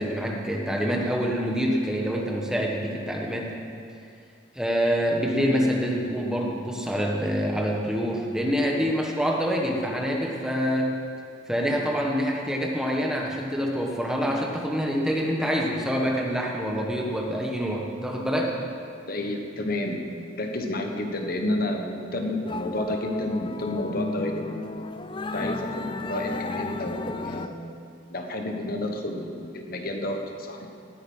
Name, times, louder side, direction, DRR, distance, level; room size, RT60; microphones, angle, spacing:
voice 1, 0.0-3.5 4.5-10.9 11.5-18.5, equal, 5° right, -1 dB, 1.4 m, -26 dB
voice 2, 19.1-24.5 25.3-27.7 28.1-30.7, left 1 dB, 45° left, 3 dB, 1.2 m, -30 dB
sound 1, 22.5-27.5, left 2 dB, 25° left, 0.4 m, -33 dB
19.0 x 9.2 x 5.5 m, 2.4 s
head